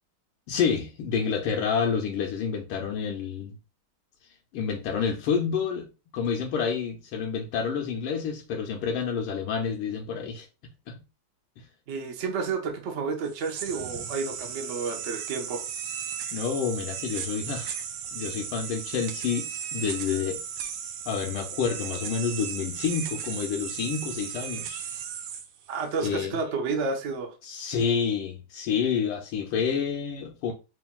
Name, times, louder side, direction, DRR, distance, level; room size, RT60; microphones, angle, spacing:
voice 1, 0.5-3.5 4.5-5.9 6.1-10.5 10.9-11.0 11.6-11.7 16.3-17.8 18.1-20.4 21.1-24.8 26.0-26.4 27.4-30.5, left 6 dB, 80° left, 1.5 m, -29 dB
voice 2, 11.9-15.6 25.7-27.3, right 4 dB, 60° right, 0.8 m, -30 dB
sound 1, 13.2-26.1, right 8 dB, 90° right, 1.5 m, -36 dB
5.8 x 2.6 x 2.2 m
omnidirectional pair, 2.3 m